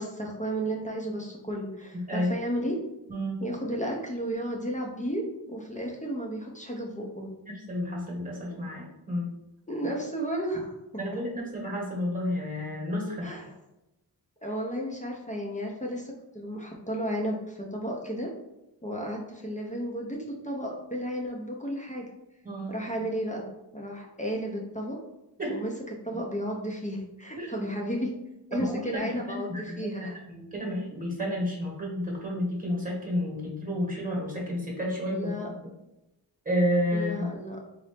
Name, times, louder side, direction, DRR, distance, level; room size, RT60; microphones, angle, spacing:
voice 1, 0.0-2.8 3.4-7.3 8.5-8.6 9.7-10.7 13.2-13.4 14.4-18.3 18.8-22.1 22.7-23.4 23.7-25.0 25.5-25.7 26.0-28.1 28.5-30.2 35.1-35.5 36.9-37.6, equal, 15° left, -1 dB, 0.6 m, -33 dB
voice 2, 1.9-2.4 3.1-3.4 7.5-9.3 11.0-13.3 22.4-22.8 25.4-25.6 27.4-27.5 28.5-35.5 36.4-37.3, left 1 dB, 20° right, -2 dB, 1.3 m, -31 dB
4.1 x 2.6 x 3.4 m, 0.93 s
wide cardioid pair, 105°, 44 cm